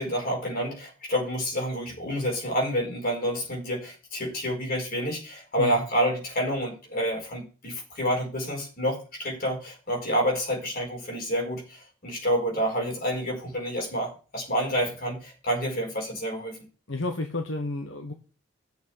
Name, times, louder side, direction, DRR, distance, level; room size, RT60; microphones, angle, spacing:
voice 1, 0.0-16.6, equal, 45° left, 0 dB, 4.8 m, -28 dB
voice 2, 16.9-18.1, left 2 dB, 70° left, 5 dB, 1.3 m, -31 dB
8.4 x 6.7 x 8.1 m, 0.35 s
head